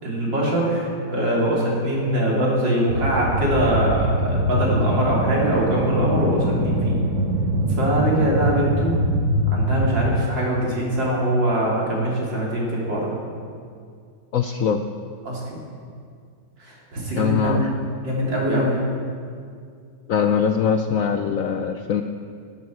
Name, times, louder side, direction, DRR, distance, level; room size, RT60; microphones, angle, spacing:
voice 1, 0.0-7.0 7.8-9.0 9.5-13.2 15.2-15.6 16.6-17.7 18.0-18.8, equal, 75° right, -4 dB, 3.9 m, -22 dB
sound 1, 2.9-10.2, right 1 dB, 45° right, 1.9 m, -23 dB
voice 2, 14.3-14.9 17.1-17.7 20.1-22.0, left 6 dB, 70° left, 6 dB, 0.8 m, -22 dB
17.5 x 12.0 x 4.6 m, 2.2 s
omnidirectional pair, 2.0 m